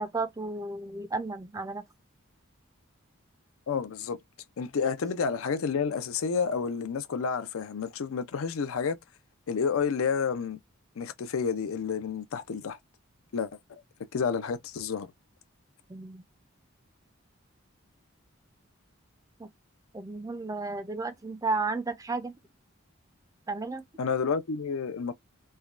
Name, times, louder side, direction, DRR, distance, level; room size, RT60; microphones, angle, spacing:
voice 1, 0.0-1.8 15.9-16.2 19.4-19.5 19.9-22.3 23.5-23.8, right 3 dB, 15° right, 0.4 m, -33 dB
voice 2, 3.7-4.2 4.6-9.0 9.5-10.6 11.0-12.8 13.3-13.8 14.1-15.1 24.0-25.1, left 6 dB, 80° left, 0.5 m, -30 dB
3.2 x 2.2 x 2.4 m
head